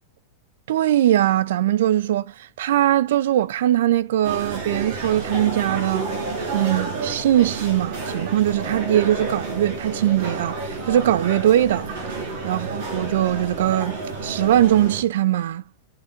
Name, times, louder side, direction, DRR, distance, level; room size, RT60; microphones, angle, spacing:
voice 1, 0.7-2.3 2.6-6.1 6.5-11.9 12.4-15.6, right 12 dB, 65° right, 0.5 m, -21 dB
sound 1, 4.2-15.0, right 3 dB, 50° right, 5.0 m, -30 dB
22.5 x 8.1 x 2.6 m
supercardioid pair, 175°, 0 cm